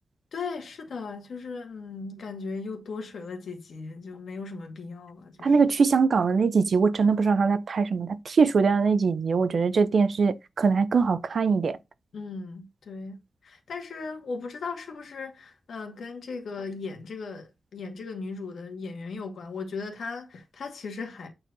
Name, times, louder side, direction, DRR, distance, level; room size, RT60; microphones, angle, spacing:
voice 1, 0.3-5.5 12.1-21.3, left 4 dB, 80° left, 2.1 m, -37 dB
voice 2, 5.4-11.8, right 5 dB, 55° right, 0.6 m, -22 dB
8.8 x 4.5 x 4.1 m
wide cardioid pair, 180°, 0 cm